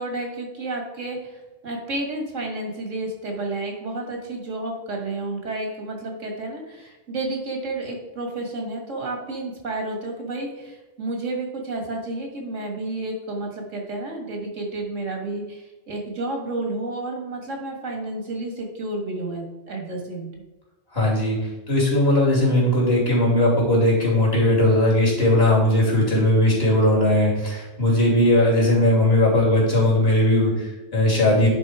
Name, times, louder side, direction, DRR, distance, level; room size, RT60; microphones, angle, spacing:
voice 1, 0.0-20.3, right 2 dB, 90° right, 2 dB, 2.1 m, -31 dB
voice 2, 20.9-21.4 21.7-31.5, left 1 dB, 55° left, -4 dB, 3.1 m, -18 dB
10.0 x 4.0 x 4.8 m, 1.1 s
omnidirectional pair, 1.3 m